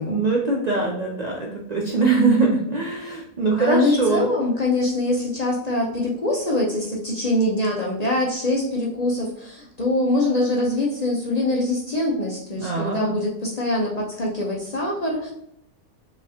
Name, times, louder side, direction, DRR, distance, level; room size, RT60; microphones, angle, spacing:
voice 1, 0.1-4.3 12.5-13.2, right 3 dB, 85° right, -1 dB, 0.3 m, -22 dB
voice 2, 3.6-15.3, left 1 dB, 40° left, -3 dB, 0.6 m, -23 dB
4.9 x 3.0 x 2.8 m, 0.71 s
omnidirectional pair, 1.5 m